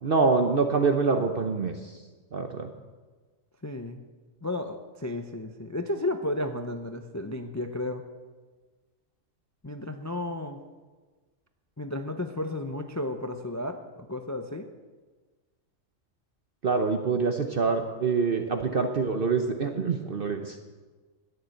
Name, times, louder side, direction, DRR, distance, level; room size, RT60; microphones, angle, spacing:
voice 1, 0.0-1.7 2.3-2.7 16.6-20.6, right 4 dB, 50° right, 5 dB, 1.0 m, -25 dB
voice 2, 3.6-4.0 4.4-8.0 9.6-10.6 11.8-14.7, left 1 dB, 20° left, 7 dB, 0.5 m, -33 dB
12.5 x 10.0 x 7.8 m, 1.3 s
omnidirectional pair, 1.4 m